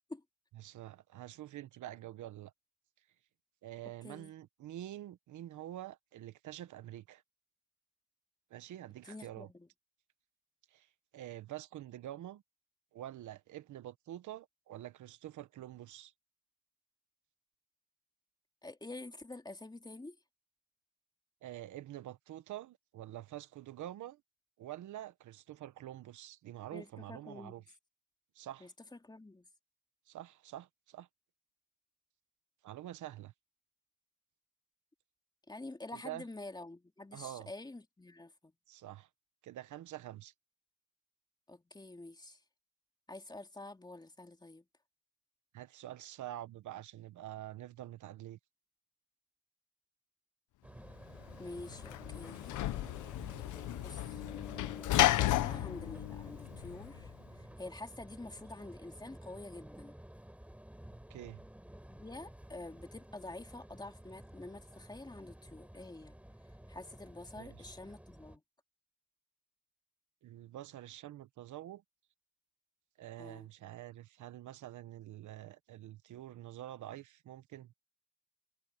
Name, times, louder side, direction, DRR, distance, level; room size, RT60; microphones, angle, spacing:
voice 1, 0.6-2.5 3.6-7.2 8.5-9.5 10.7-10.9 11.1-12.4 12.9-16.1 21.4-24.2 24.6-27.6 28.3-28.7 30.1-31.1 32.6-33.3 35.9-36.2 37.1-37.5 38.7-39.1 39.4-40.3 45.5-48.4 61.1-61.4 67.4-67.7 70.2-71.8 73.0-77.8, right 13 dB, 75° right, 1.3 m, -47 dB
voice 2, 9.0-9.7 18.6-20.2 26.7-27.5 28.6-29.5 35.5-38.5 41.5-42.4 43.1-44.6 51.4-52.6 53.8-54.2 54.9-60.0 61.9-66.2 66.7-68.4 73.2-73.5, left 2 dB, 15° left, 2.8 m, -48 dB
sound 1, 50.6-68.4, right 1 dB, 5° right, 5.0 m, -52 dB
Sliding door / Slam, 51.2-57.1, left 15 dB, 80° left, 0.9 m, -33 dB
cardioid pair, 90°, 30 cm